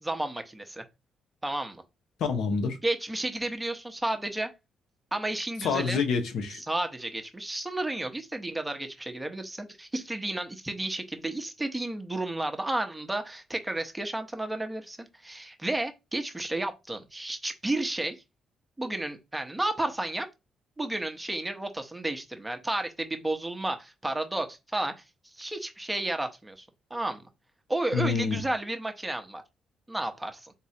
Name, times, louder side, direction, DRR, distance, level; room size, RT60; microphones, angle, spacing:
voice 1, 0.0-0.8 1.4-1.8 2.8-4.5 5.1-6.0 6.6-18.2 18.8-20.3 20.8-24.9 25.4-27.2 27.7-29.4 29.9-30.5, right 2 dB, 10° right, 0.9 m, -32 dB
voice 2, 2.2-2.8 5.6-6.6 27.9-28.4, left 5 dB, 75° left, 1.0 m, -27 dB
4.2 x 3.6 x 2.8 m
cardioid pair, 90°, 0 cm